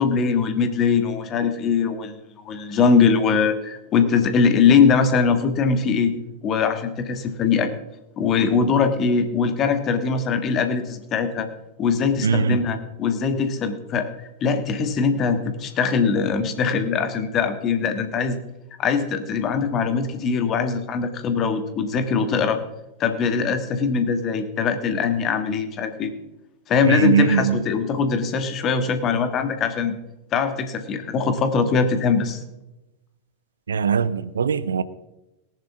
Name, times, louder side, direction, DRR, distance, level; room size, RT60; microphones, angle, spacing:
voice 1, 0.0-2.2 2.4-6.1 6.4-7.7 8.2-11.5 11.8-14.1 14.4-18.4 18.8-22.6 23.0-26.1 26.7-29.9 30.3-32.4, left 5 dB, 30° left, 1.7 m, -21 dB
voice 2, 12.2-12.6 26.9-27.6 33.7-34.8, right 6 dB, 70° right, 0.6 m, -20 dB
18.5 x 10.5 x 3.5 m
figure-of-eight pair, 90°, 0 cm